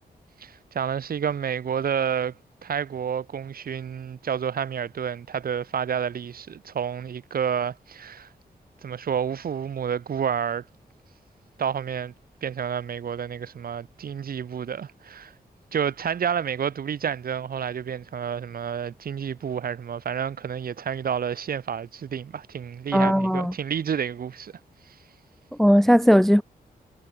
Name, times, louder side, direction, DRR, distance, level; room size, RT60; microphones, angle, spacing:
voice 1, 0.4-2.3 2.6-8.3 8.8-10.6 11.6-12.1 12.4-15.3 15.7-24.5, right 7 dB, 65° right, 2.8 m, -29 dB
voice 2, 22.9-23.5 25.6-26.4, equal, ahead, 0.4 m, -17 dB
wide cardioid pair, 165°, 16 cm